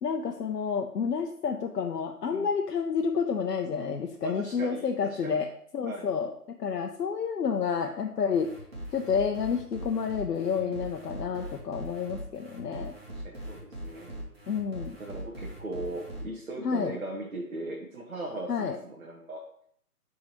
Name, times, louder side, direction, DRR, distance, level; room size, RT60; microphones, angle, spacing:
voice 1, 0.0-5.5 5.7-6.3 6.6-8.5 8.9-12.9 14.5-15.0 16.6-17.0 18.5-18.8, left 6 dB, 90° left, 3 dB, 0.7 m, -29 dB
voice 2, 4.2-5.4 5.8-6.1 10.5-10.9 13.1-14.2 15.0-19.4, right 2 dB, 55° right, -1 dB, 1.1 m, -39 dB
sound 1, 8.3-16.2, right 1 dB, 40° right, 1.5 m, -41 dB
9.7 x 3.7 x 2.9 m, 0.65 s
hypercardioid pair, 180°, 47 cm